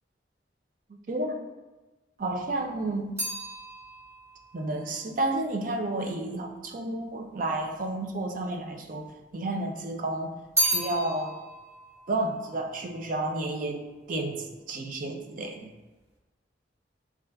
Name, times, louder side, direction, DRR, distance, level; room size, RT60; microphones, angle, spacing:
voice 1, 0.9-1.4 2.2-3.1 4.5-9.1 9.3-10.3 10.6-11.4 12.1-15.7, right 2 dB, 50° right, 3 dB, 0.4 m, -31 dB
sound 1, 2.2-6.6 7.4-8.2 8.5-9.6 10.0-13.5 13.8-14.3, equal, 15° right, 1.4 m, -34 dB
6.3 x 2.4 x 2.2 m, 1.1 s
head